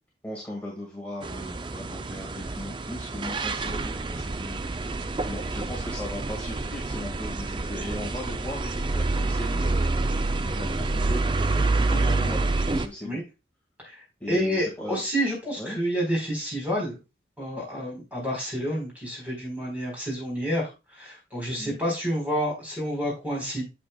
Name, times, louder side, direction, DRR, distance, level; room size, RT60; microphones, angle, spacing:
voice 1, 0.2-4.6 5.2-13.2 14.2-15.0 15.6-15.8 21.6-21.8, left 1 dB, 10° left, -4 dB, 1.8 m, -38 dB
sound 1, 1.2-12.9, right 3 dB, 25° right, 0.4 m, -27 dB
voice 2, 14.3-17.0 17.4-20.7 21.0-23.7, equal, 10° right, -2 dB, 4.0 m, -29 dB
8.5 x 7.1 x 2.3 m, 0.26 s
head